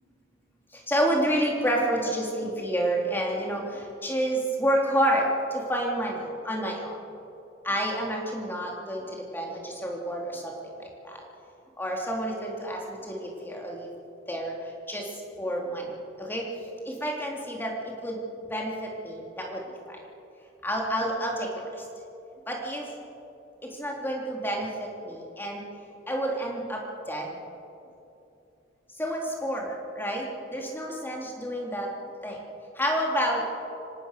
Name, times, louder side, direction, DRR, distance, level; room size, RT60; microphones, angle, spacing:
voice 1, 0.7-7.0 7.6-11.2 11.8-13.9 14.3-14.5 14.9-15.1 15.4-15.9 16.2-16.5 16.8-18.2 18.5-20.0 20.6-21.8 22.5-22.9 23.6-25.6 26.1-27.3 29.0-31.9 32.2-32.4 32.7-33.4, equal, 10° left, -1 dB, 3.2 m, -29 dB
25.5 x 17.5 x 6.6 m, 2.8 s
head